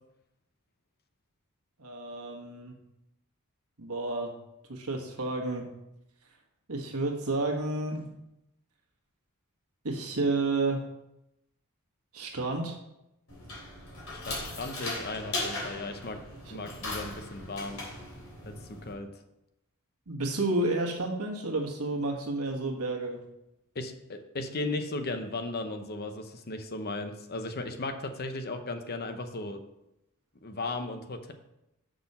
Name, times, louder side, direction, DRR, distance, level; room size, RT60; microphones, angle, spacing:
voice 1, 1.8-2.7 3.8-4.3 4.7-5.6 6.7-8.1 9.8-10.8 12.1-12.8 20.1-23.2, right 2 dB, 75° right, 1 dB, 1.6 m, -30 dB
sound 1, 13.3-18.9, left 2 dB, 65° left, 3.3 m, -38 dB
voice 2, 14.1-16.2 16.5-17.8 18.4-19.1 23.7-29.6 30.4-31.3, left 2 dB, 45° left, 7 dB, 0.8 m, -36 dB
6.3 x 6.1 x 5.5 m, 0.87 s
head